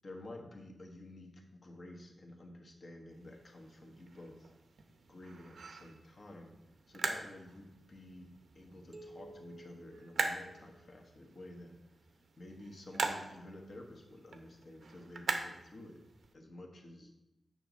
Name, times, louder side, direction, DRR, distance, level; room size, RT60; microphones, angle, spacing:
voice 1, 0.0-4.5 5.1-6.5 6.9-11.8 12.4-16.0 16.3-17.1, left 1 dB, 40° left, 1 dB, 1.3 m, -51 dB
sound 1, 3.1-16.3, right 4 dB, 65° right, 0.8 m, -43 dB
sound 2, 8.9-11.3, right 2 dB, 20° right, 0.8 m, -55 dB
8.9 x 6.2 x 4.0 m, 0.94 s
wide cardioid pair, 160°, 0 cm